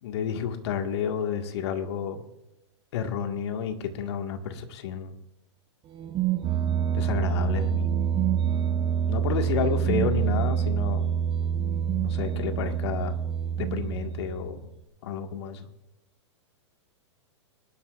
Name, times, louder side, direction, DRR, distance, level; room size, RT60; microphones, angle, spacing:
voice 1, 0.0-2.2 2.9-5.2 6.9-7.9 9.1-11.1 12.0-13.2 13.6-14.6 15.0-15.7, left 7 dB, 60° left, 6 dB, 1.8 m, -30 dB
sound 1, 5.9-14.7, right 8 dB, 30° right, 1.2 m, -26 dB
23.5 x 12.0 x 2.5 m, 0.92 s
hypercardioid pair, 115°, 15 cm